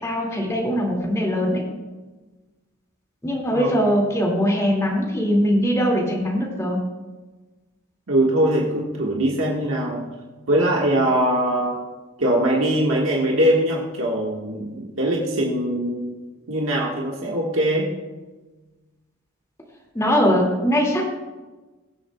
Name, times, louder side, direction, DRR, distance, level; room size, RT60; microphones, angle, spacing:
voice 1, 0.0-1.6 3.2-6.8 19.9-21.0, equal, 15° left, -2 dB, 2.2 m, -21 dB
voice 2, 8.1-10.1 10.5-11.8 12.2-16.1 16.5-17.9, right 1 dB, 70° right, -3 dB, 1.5 m, -22 dB
22.0 x 7.5 x 2.3 m, 1.2 s
head